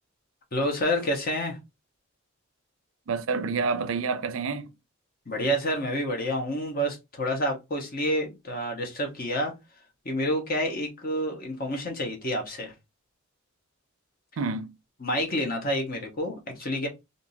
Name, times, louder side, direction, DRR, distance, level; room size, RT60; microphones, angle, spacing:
voice 1, 0.5-1.6 5.3-9.5 10.0-12.7 15.0-16.9, equal, 45° left, 1.1 m, -28 dB
voice 2, 3.1-4.7 14.4-14.7, right 4 dB, 75° right, 0.4 m, -28 dB
3.6 x 2.6 x 2.7 m
head